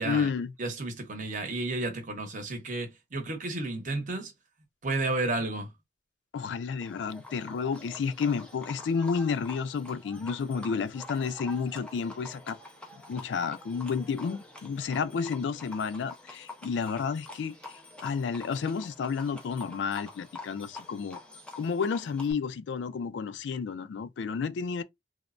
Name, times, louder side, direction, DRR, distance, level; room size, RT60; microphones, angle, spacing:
voice 1, 0.0-0.5 6.3-12.6 13.1-17.6 18.0-21.2 21.6-24.8, left 5 dB, 70° left, 0.3 m, -31 dB
voice 2, 0.6-4.3 4.8-5.7, right 2 dB, 45° right, 0.8 m, -32 dB
Livestock farm animals working animals, 6.8-22.3, left 2 dB, 5° left, 0.6 m, -46 dB
3.2 x 2.0 x 2.4 m
head